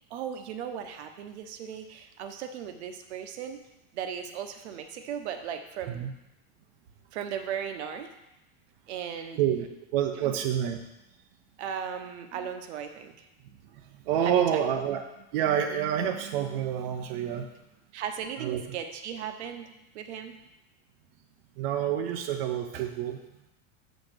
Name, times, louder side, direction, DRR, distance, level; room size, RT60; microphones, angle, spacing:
voice 1, 0.1-3.6 3.9-6.1 7.1-8.1 8.9-9.4 10.2-10.4 11.6-13.3 14.2-14.9 17.9-20.3, right 8 dB, 85° right, 6 dB, 1.0 m, -37 dB
voice 2, 9.9-10.8 13.7-15.0 15.3-17.5 18.4-18.6 21.6-23.2, right 9 dB, 60° right, 4 dB, 0.7 m, -28 dB
7.2 x 4.1 x 6.6 m, 0.92 s
supercardioid pair, 180°, 32 cm